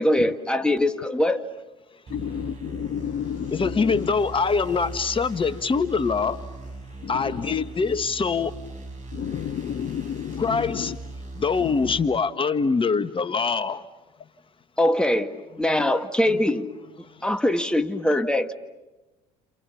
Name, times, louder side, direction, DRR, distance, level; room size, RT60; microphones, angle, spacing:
voice 1, 0.0-1.5 14.8-16.7 17.2-18.5, left 1 dB, 5° left, 1.9 m, -22 dB
voice 2, 2.1-4.1 7.0-7.6 9.1-11.0 11.6-12.0, left 9 dB, 50° left, 1.0 m, -32 dB
sound 1, 2.1-12.0, right 2 dB, 45° right, 7.8 m, -39 dB
voice 3, 3.5-6.4 7.1-8.5 10.4-10.9 11.4-13.8, left 5 dB, 30° left, 1.5 m, -24 dB
29.5 x 28.0 x 7.1 m
hypercardioid pair, 60°, 17 cm